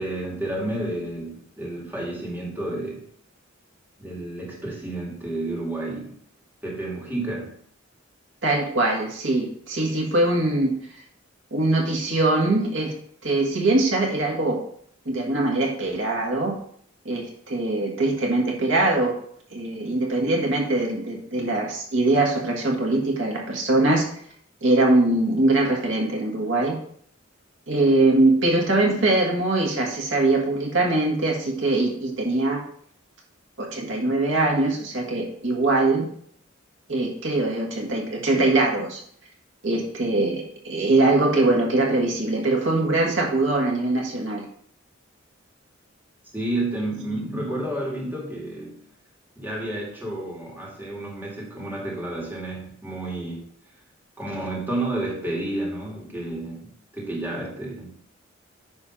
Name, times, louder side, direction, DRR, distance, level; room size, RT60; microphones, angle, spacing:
voice 1, 0.0-3.1 4.0-6.2 6.6-7.6 46.3-48.8 49.4-53.5 54.2-57.9, right 1 dB, 10° right, -3 dB, 2.2 m, -31 dB
voice 2, 8.4-10.7 11.5-12.9 13.2-14.6 15.0-16.6 17.0-19.2 19.5-24.0 24.6-26.8 27.7-32.6 33.6-36.1 36.9-39.0 39.6-44.4 47.3-47.6 48.0-48.1, right 2 dB, 70° right, -1 dB, 1.7 m, -22 dB
9.6 x 3.4 x 5.7 m, 0.62 s
head